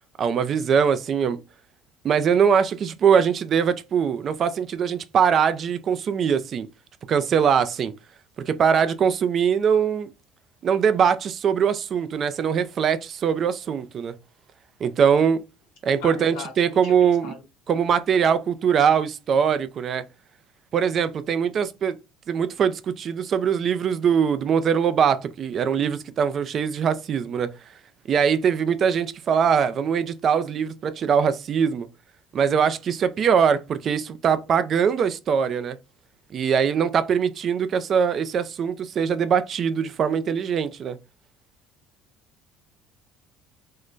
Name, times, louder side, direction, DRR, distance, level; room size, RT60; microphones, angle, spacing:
voice 1, 0.2-1.4 2.0-6.7 7.1-7.9 8.5-10.1 10.6-14.1 14.8-15.4 15.8-17.3 17.7-20.0 20.7-21.9 22.3-27.5 28.1-31.9 32.3-35.8 36.3-41.0, right 7 dB, 40° right, 0.4 m, -22 dB
voice 2, 16.0-17.3, left 6 dB, 85° left, 1.1 m, -39 dB
3.8 x 2.1 x 3.1 m
cardioid pair, 115°, 0 cm